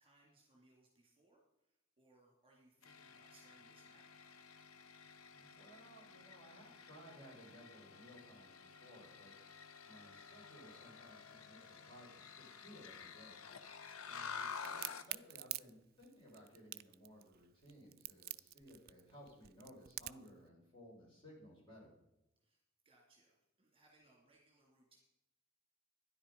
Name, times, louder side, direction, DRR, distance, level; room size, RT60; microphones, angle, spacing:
voice 1, 0.0-4.2 13.8-14.2 22.4-25.0, right 2 dB, 25° right, -1 dB, 2.7 m, -70 dB
sound 1, 2.8-15.2, left 6 dB, 75° left, 0.9 m, -51 dB
voice 2, 5.3-9.3 9.9-13.4 14.0-21.9, equal, 25° left, -4 dB, 5.3 m, -59 dB
Crack, 14.6-20.3, right 17 dB, 45° right, 0.3 m, -46 dB
12.5 x 10.5 x 5.3 m, 0.86 s
head